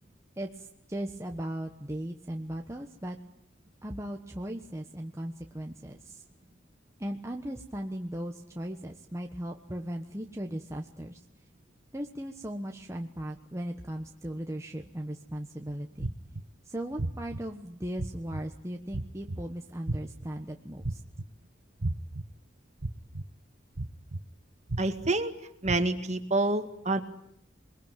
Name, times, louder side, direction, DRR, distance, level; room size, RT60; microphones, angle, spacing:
voice 1, 0.4-3.2 3.8-6.2 7.0-11.2 11.9-16.1 16.6-21.0, right 1 dB, 15° right, 2 dB, 1.3 m, -37 dB
sound 1, 16.0-16.4 17.0-17.4 18.0-18.4 18.9-19.4 19.9-20.3 20.8-21.3 21.8-22.2 22.8-23.2 23.8-24.2 24.7-25.1 25.7-25.8, right 2 dB, 85° right, 1.5 m, -32 dB
voice 2, 24.8-25.3 25.6-27.0, right 2 dB, 35° right, 8 dB, 2.2 m, -27 dB
28.0 x 21.5 x 9.3 m, 0.74 s
head